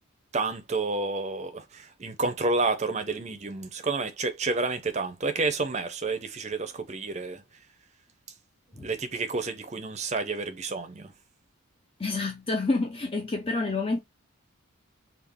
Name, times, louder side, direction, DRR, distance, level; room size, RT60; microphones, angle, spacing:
voice 1, 0.3-7.4 8.8-11.1, right 3 dB, 30° right, 0.6 m, -30 dB
voice 2, 12.0-14.0, left 3 dB, 25° left, 0.6 m, -28 dB
3.7 x 2.4 x 3.5 m
head